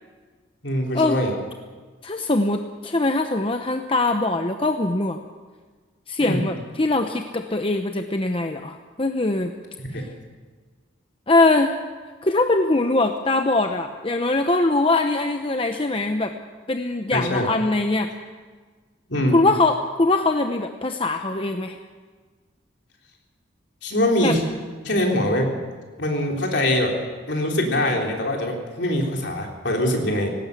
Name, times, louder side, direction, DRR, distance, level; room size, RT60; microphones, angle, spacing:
voice 1, 0.6-1.3 6.2-6.5 9.9-10.0 17.1-17.5 19.1-19.4 23.8-24.4 24.8-25.5 26.0-27.0 27.3-30.3, left 1 dB, 60° left, 0 dB, 3.9 m, -23 dB
voice 2, 2.0-5.2 6.1-9.5 9.9-10.1 11.3-11.7 12.2-16.3 16.7-18.1 19.3-21.8 24.2-24.4, left 2 dB, 30° left, 5 dB, 0.8 m, -22 dB
18.5 x 17.5 x 8.3 m, 1.5 s
head